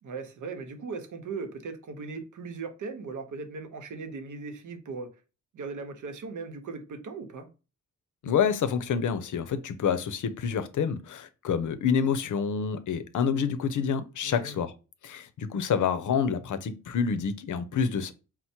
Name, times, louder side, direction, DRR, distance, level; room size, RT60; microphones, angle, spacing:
voice 1, 0.0-5.1 5.5-7.5 14.2-14.6, right 4 dB, 85° right, 0.8 m, -38 dB
voice 2, 8.2-14.7 15.0-18.1, left 6 dB, 80° left, 0.6 m, -28 dB
4.4 x 2.1 x 4.2 m
wide cardioid pair, 135°, 30 cm